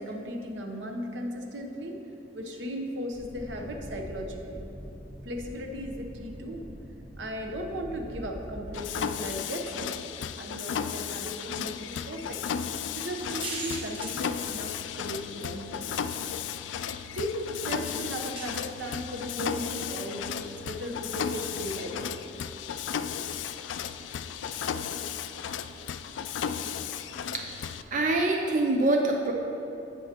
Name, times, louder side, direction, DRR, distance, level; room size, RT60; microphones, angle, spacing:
voice 1, 0.0-2.0 2.3-4.6 5.2-6.7 7.2-12.4 12.9-16.4 17.1-22.2, equal, 85° right, 2 dB, 1.0 m, -36 dB
sound 1, 3.1-8.7, equal, 5° right, 2.0 m, -44 dB
Mechanisms, 8.7-27.8, left 7 dB, 85° left, 0.3 m, -34 dB
sound 2, 13.1-15.0 15.9-16.0 18.3-18.6, right 1 dB, 30° right, 1.6 m, -38 dB
voice 2, 27.9-29.3, right 2 dB, 45° right, 1 dB, 0.5 m, -24 dB
16.5 x 5.6 x 3.0 m, 3.0 s
head